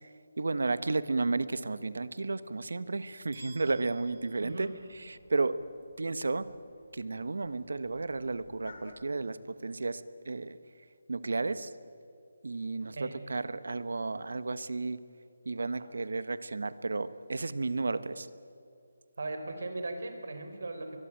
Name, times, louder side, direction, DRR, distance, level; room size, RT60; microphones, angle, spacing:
voice 1, 0.4-4.7 4.9-5.6 6.0-6.5 6.9-10.6 11.1-11.7 12.4-15.0 15.4-18.3, right 3 dB, 85° right, 14 dB, 1.3 m, -33 dB
sound 1, 3.3-5.3, right 3 dB, 25° right, 5.5 m, -55 dB
sound 2, 3.7-9.1, left 3 dB, 45° left, 3.2 m, -57 dB
voice 2, 4.4-4.8 12.8-13.2 15.8-15.9 19.2-21.0, right 2 dB, 65° right, 7 dB, 4.3 m, -38 dB
23.5 x 22.0 x 9.2 m, 2.4 s
hypercardioid pair, 180°, 0 cm